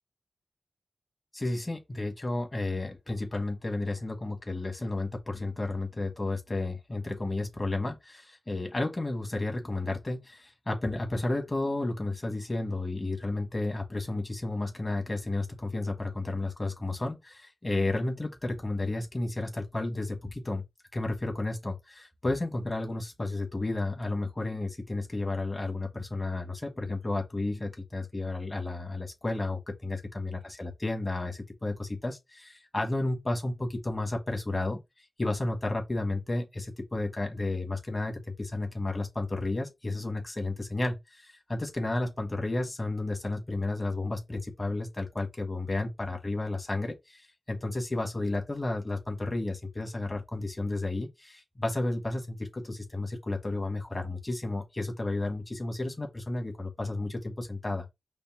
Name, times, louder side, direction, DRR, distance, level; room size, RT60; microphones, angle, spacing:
voice 1, 1.3-20.6 20.9-34.8 35.2-57.9, left 2 dB, 30° left, 1.5 m, -32 dB
5.3 x 2.1 x 3.7 m
wide cardioid pair, 75°, 0 cm